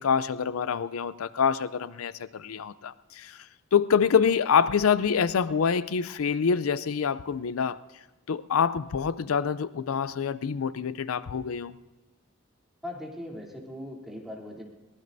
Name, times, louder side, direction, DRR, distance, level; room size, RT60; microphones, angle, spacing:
voice 1, 0.0-7.8 8.3-11.7, left 6 dB, 85° left, 16 dB, 0.5 m, -26 dB
voice 2, 12.8-14.6, left 1 dB, ahead, -3 dB, 3.1 m, -39 dB
22.5 x 19.0 x 2.7 m, 1.2 s
head